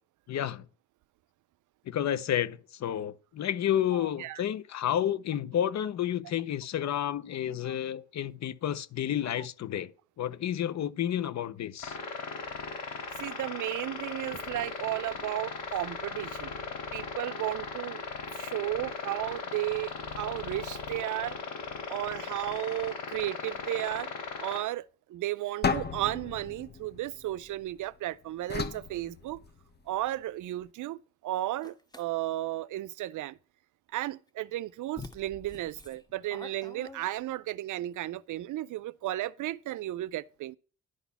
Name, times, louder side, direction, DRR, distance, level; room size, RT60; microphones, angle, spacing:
voice 1, 0.3-0.7 1.9-9.9 10.2-12.0, left 10 dB, 60° left, 0.7 m, -30 dB
voice 2, 3.9-4.4 7.6-7.7 9.4-9.5 13.2-16.5 16.9-18.0 18.3-21.4 21.9-24.1 24.4-29.4 29.9-33.4 33.9-40.6, right 15 dB, 75° right, 0.5 m, -34 dB
sound 1, 11.8-24.6, left 4 dB, 80° left, 3.6 m, -38 dB
sound 2, 25.6-27.8 28.5-29.9, left 5 dB, 35° left, 1.0 m, -34 dB
sound 3, 31.6-32.1 34.3-34.4 35.0-37.5, left 3 dB, 15° left, 1.2 m, -47 dB
11.0 x 4.1 x 6.9 m
cardioid pair, 120°, 31 cm